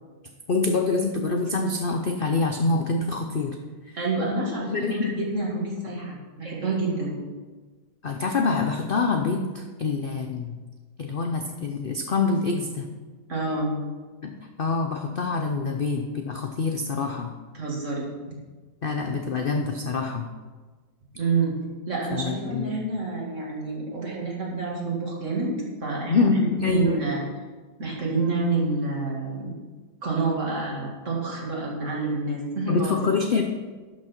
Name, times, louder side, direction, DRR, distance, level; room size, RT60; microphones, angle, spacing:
voice 1, 0.5-3.6 3.9-4.0 4.7-5.1 8.0-10.5 11.0-12.9 14.2-17.3 18.8-20.3 22.1-22.8 26.1-27.0 32.7-33.4, left 4 dB, 65° left, 4 dB, 0.5 m, -25 dB
voice 2, 4.0-7.1 13.3-13.8 17.5-18.1 21.1-21.6 21.9-25.5 25.8-26.3 26.7-27.2 27.8-29.5 30.0-33.0, right 3 dB, 45° right, -4 dB, 2.5 m, -28 dB
11.5 x 6.3 x 4.4 m, 1.4 s
omnidirectional pair, 1.8 m